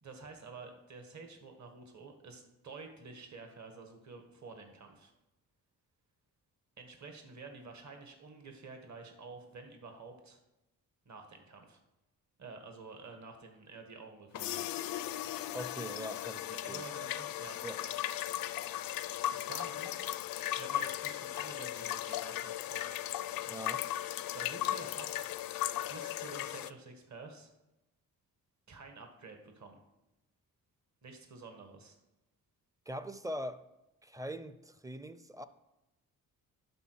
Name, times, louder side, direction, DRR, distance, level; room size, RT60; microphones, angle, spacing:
voice 1, 0.0-5.1 6.8-10.4 11.0-11.8 12.4-14.7 16.5-17.9 19.3-20.0 20.6-23.1 24.3-25.3 25.9-27.5 28.7-29.8 31.0-31.9, right 4 dB, 50° right, 4 dB, 1.6 m, -50 dB
WC-Chasse d'eau, 14.3-26.7, left 13 dB, 65° left, 0.5 m, -37 dB
voice 2, 15.5-16.8 17.6-17.8 23.5-23.8 32.9-33.7 34.0-35.4, equal, 10° right, 12 dB, 0.6 m, -42 dB
11.5 x 3.9 x 4.6 m, 0.95 s
supercardioid pair, 60°, 37 cm